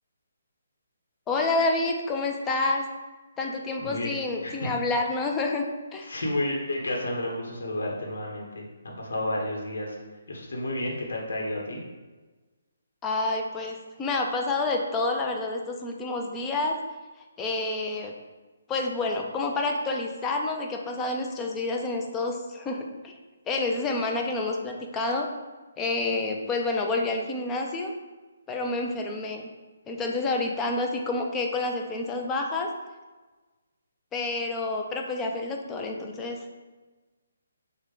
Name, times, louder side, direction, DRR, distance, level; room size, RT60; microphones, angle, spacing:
voice 1, 1.3-2.9 3.4-5.7 5.9-6.1 13.0-16.8 17.4-18.1 18.7-23.1 23.5-25.3 25.8-27.9 28.5-29.5 29.9-32.7 34.1-36.6, left 2 dB, 10° left, 2 dB, 0.4 m, -28 dB
voice 2, 3.8-4.1 4.4-4.7 6.0-10.0 10.3-11.8, left 1 dB, 70° left, -1 dB, 1.0 m, -31 dB
6.2 x 2.1 x 3.8 m, 1.2 s
hypercardioid pair, 165°, 0 cm